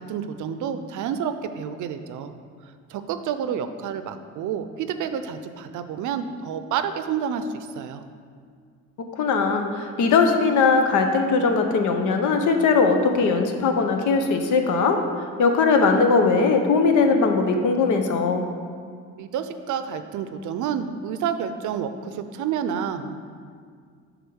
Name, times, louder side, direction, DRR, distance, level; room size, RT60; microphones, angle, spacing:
voice 1, 0.0-2.3 2.9-8.0 19.2-23.2, right 7 dB, 75° right, 10 dB, 0.5 m, -29 dB
voice 2, 9.2-15.0 15.4-18.4, left 4 dB, 75° left, 5 dB, 0.8 m, -20 dB
6.9 x 3.6 x 6.3 m, 2.1 s
cardioid pair, 90°, 30 cm